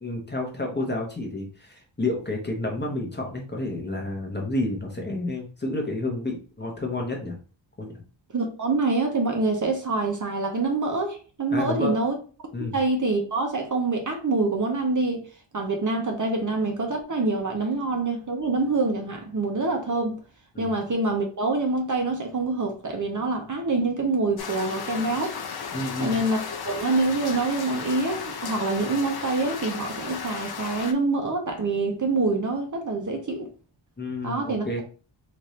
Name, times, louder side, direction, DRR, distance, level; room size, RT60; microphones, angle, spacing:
voice 1, 0.0-7.4 7.8-8.0 11.5-12.0 12.5-12.8 20.5-20.7 25.7-26.2 34.0-34.8, left 2 dB, 20° left, 0.9 m, -30 dB
voice 2, 8.3-12.2 12.7-15.2 15.5-20.2 20.6-25.3 26.0-33.5 34.2-34.6, right 3 dB, 40° right, 0.8 m, -26 dB
sound 1, 24.4-30.9, left 6 dB, 50° left, 0.6 m, -34 dB
4.2 x 2.6 x 3.1 m
wide cardioid pair, 140°, 47 cm